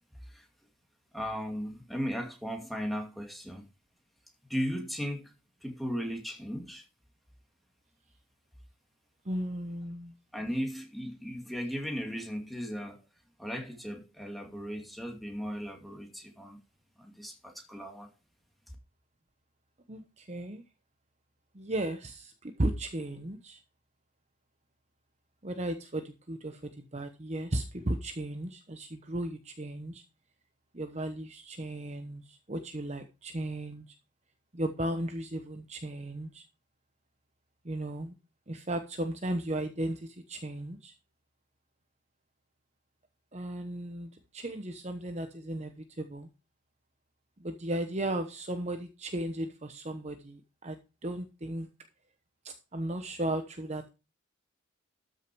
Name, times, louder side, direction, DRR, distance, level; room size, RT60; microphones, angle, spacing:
voice 1, 1.1-3.6 4.5-5.3 5.6-6.8 10.3-13.0 13.4-16.6 17.0-18.1, equal, ahead, 2.4 m, -36 dB
voice 2, 9.2-10.1 19.9-20.6 21.5-23.6 25.4-30.0 30.7-33.8 34.5-36.4 37.6-38.1 38.5-40.9 43.3-46.3 47.4-50.8 51.0-51.7 52.4-53.9, right 1 dB, 30° right, 1.0 m, -35 dB
13.0 x 6.5 x 4.6 m
head